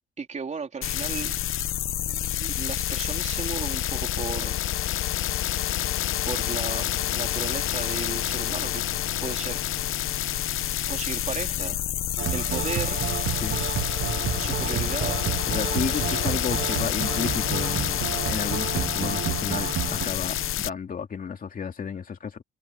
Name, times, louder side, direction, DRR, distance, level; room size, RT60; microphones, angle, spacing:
voice 1, 0.2-1.3 2.1-4.7 6.3-8.8 9.2-9.6 10.9-11.8 12.3-13.0 14.4-15.3 15.8-16.2, right 5 dB, 35° right, 4.0 m, -35 dB
sound 1, 0.8-20.7, left 12 dB, 90° left, 0.9 m, -28 dB
sound 2, 11.8-20.1, equal, ahead, 1.4 m, -48 dB
sound 3, 12.2-20.1, right 10 dB, 70° right, 1.0 m, -31 dB
voice 2, 15.5-22.4, left 6 dB, 45° left, 2.6 m, -33 dB
wide cardioid pair, 150°, 21 cm